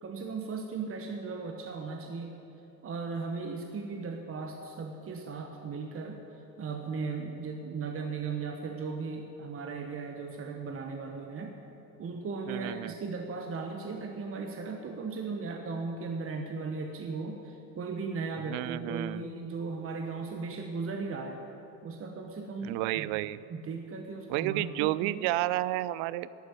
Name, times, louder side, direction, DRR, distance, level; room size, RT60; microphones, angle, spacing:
voice 1, 0.0-2.4 2.8-6.2 6.6-11.6 12.0-21.4 21.8-23.1 23.5-25.3, right 4 dB, 25° right, 3 dB, 1.2 m, -37 dB
voice 2, 12.5-12.9 18.5-19.2 22.6-23.4 24.3-26.3, right 17 dB, 45° right, 18 dB, 0.5 m, -31 dB
12.5 x 8.9 x 9.0 m, 2.9 s
figure-of-eight pair, 70°, 49 cm